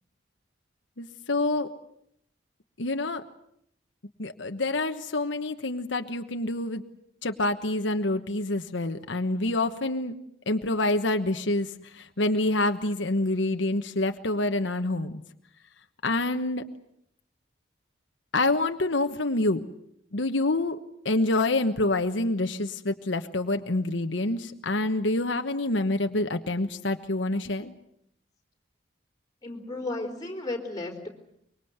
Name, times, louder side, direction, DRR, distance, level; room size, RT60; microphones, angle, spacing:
voice 1, 1.0-1.7 2.8-3.2 4.2-6.8 7.2-10.1 10.5-11.7 11.9-15.1 16.0-16.6 18.3-19.6 20.1-20.8 21.0-27.7, left 2 dB, 80° left, 6 dB, 1.2 m, -27 dB
voice 2, 29.4-31.1, left 2 dB, 20° left, 1 dB, 4.2 m, -34 dB
24.5 x 23.0 x 8.1 m, 0.72 s
head